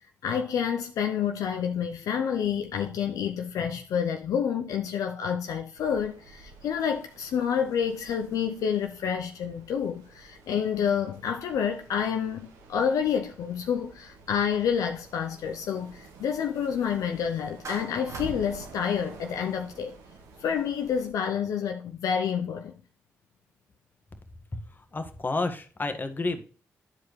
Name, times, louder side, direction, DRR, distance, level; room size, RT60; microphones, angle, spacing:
voice 1, 0.2-19.9 20.4-22.7, left 7 dB, 75° left, 0.6 m, -28 dB
sound 1, 5.8-21.1, right 3 dB, 85° right, 1.1 m, -49 dB
Clapping, 17.6-18.3, right 4 dB, 60° right, 1.4 m, -40 dB
voice 2, 24.5-26.4, left 2 dB, 35° left, 1.5 m, -31 dB
10.5 x 4.9 x 3.2 m
supercardioid pair, 45°, 6 cm